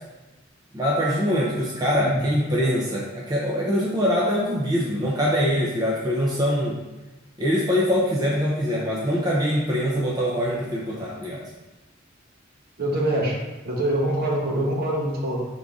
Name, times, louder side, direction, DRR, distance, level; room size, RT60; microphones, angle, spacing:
voice 1, 0.7-6.8 7.4-11.4, equal, 20° right, -5 dB, 0.6 m, -23 dB
Piano, 0.8-3.7 11.9-12.1, right 1 dB, 40° left, 0.7 m, -39 dB
voice 2, 12.8-13.4 13.6-15.4, right 1 dB, 50° right, -3 dB, 1.0 m, -24 dB
3.7 x 2.6 x 4.7 m, 1.1 s
head